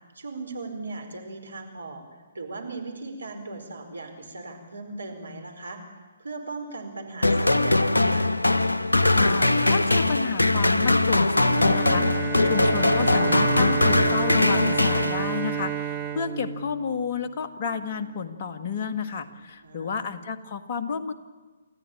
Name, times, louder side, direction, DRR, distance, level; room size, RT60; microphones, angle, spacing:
voice 1, 0.1-2.0 2.3-5.8 6.2-8.3 19.6-20.1, right 3 dB, 70° right, 4 dB, 4.8 m, -38 dB
sound 1, 7.2-15.6, left 2 dB, 80° left, 1.0 m, -21 dB
voice 2, 9.1-21.1, left 6 dB, 40° left, 5 dB, 1.8 m, -31 dB
Bowed string instrument, 11.4-17.4, right 9 dB, 10° right, 1.9 m, -31 dB
29.0 x 14.0 x 8.8 m, 1.3 s
figure-of-eight pair, 130°, 0 cm